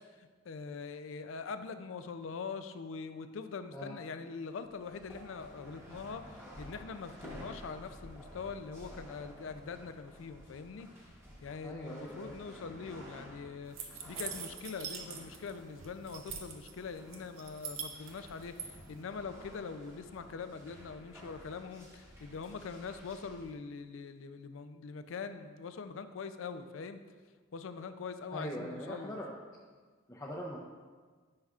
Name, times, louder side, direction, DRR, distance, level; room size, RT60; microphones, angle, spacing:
voice 1, 0.5-10.9 11.4-27.0 27.5-29.2, left 5 dB, 75° left, 10 dB, 0.4 m, -43 dB
sound 1, 4.6-23.5, equal, 10° right, 1.0 m, -53 dB
voice 2, 11.6-12.4 28.3-29.3 30.1-30.6, equal, 15° left, -5 dB, 0.5 m, -41 dB
sound 2, 13.8-15.5 15.8-16.7 17.1-18.7, right 7 dB, 85° right, 0.8 m, -42 dB
9.5 x 5.6 x 2.4 m, 1.5 s
head